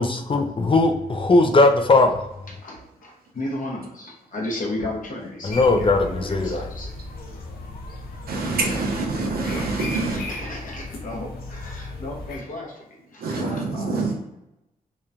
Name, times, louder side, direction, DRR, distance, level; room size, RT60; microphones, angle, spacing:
voice 1, 0.0-2.2 5.4-6.6, left 2 dB, 35° left, 0.4 m, -18 dB
voice 2, 2.5-7.0 8.7-8.9 9.5-14.1, left 1 dB, 60° left, 0.9 m, -34 dB
sound 1, 5.5-12.4, left 1 dB, 90° left, 0.5 m, -36 dB
voice 3, 8.3-10.2 13.2-14.1, right 3 dB, 85° right, 0.6 m, -26 dB
3.0 x 2.1 x 2.4 m
cardioid pair, 55°, 15 cm